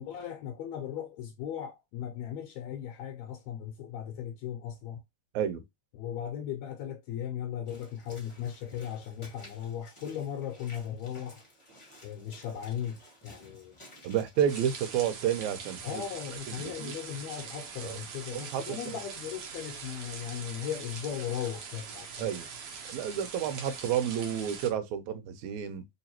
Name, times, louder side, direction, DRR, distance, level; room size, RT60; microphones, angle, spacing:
voice 1, 0.0-5.0 6.0-11.4 12.0-13.8 15.8-22.3, left 9 dB, 80° left, 1.8 m, -37 dB
Walk footsteps / Splash splatter, 7.7-15.0, left 1 dB, 35° left, 0.4 m, -55 dB
voice 2, 14.0-16.0 16.5-16.9 17.8-18.0 18.3-19.0 22.2-22.5 22.9-25.9, right 9 dB, 85° right, 2.0 m, -31 dB
sound 1, 14.5-24.7, right 6 dB, 65° right, 1.5 m, -43 dB
4.5 x 2.9 x 2.8 m
omnidirectional pair, 3.4 m